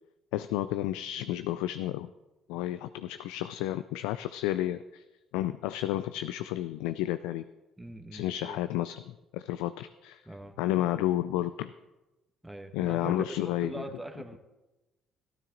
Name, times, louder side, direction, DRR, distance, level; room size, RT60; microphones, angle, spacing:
voice 1, 0.3-2.1 2.5-5.0 5.3-7.4 8.1-10.2 10.6-11.7 12.7-13.8, left 14 dB, 85° left, 12 dB, 0.3 m, -31 dB
voice 2, 7.8-8.6 10.3-10.5 12.4-13.1 13.6-14.4, right 1 dB, 10° right, 4 dB, 1.3 m, -41 dB
14.0 x 12.5 x 3.9 m, 1.1 s
supercardioid pair, 70°, 0 cm